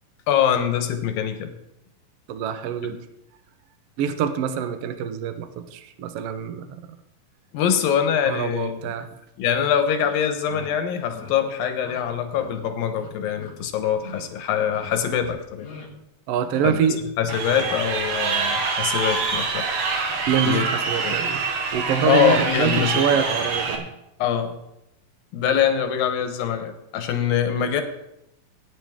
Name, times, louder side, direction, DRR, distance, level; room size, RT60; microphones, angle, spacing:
voice 1, 0.3-1.5 2.8-3.0 7.5-8.9 9.4-15.7 16.6-16.9 17.2-19.7 20.4-20.7 21.0-21.2 22.0-23.1 24.2-24.6 25.3-27.8, left 8 dB, 90° left, 7 dB, 2.9 m, -24 dB
voice 2, 2.3-3.0 4.0-7.0 8.3-9.1 16.3-17.1 20.3-21.4 21.7-23.9, right 8 dB, 80° right, 9 dB, 1.3 m, -25 dB
sound 1, 9.4-9.5 10.0-10.2 10.5-10.7 11.1-11.3 11.8-12.0 12.3-12.6 12.9-13.5 13.9-14.2 14.5-14.9 15.2-15.9, left 4 dB, 50° left, 3.6 m, -42 dB
Crowd, 17.3-23.8, right 4 dB, 55° right, 2.2 m, -25 dB
17.0 x 9.3 x 3.6 m, 0.86 s
omnidirectional pair, 3.9 m